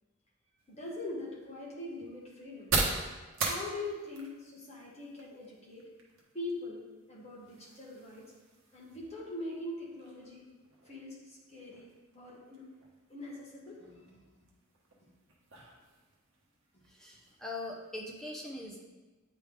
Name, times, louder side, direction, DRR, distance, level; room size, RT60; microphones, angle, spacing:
sound 1, 0.6-18.2, right 3 dB, 70° right, 1.0 m, -42 dB
voice 1, 0.7-2.7 3.4-5.9 6.3-8.3 8.7-10.4 10.8-11.9 12.1-12.7 13.1-14.2 16.7-16.8, left 2 dB, 30° left, -5 dB, 1.5 m, -42 dB
voice 2, 16.9-18.9, left 2 dB, ahead, -2 dB, 0.7 m, -42 dB
8.9 x 3.3 x 3.6 m, 1.2 s
head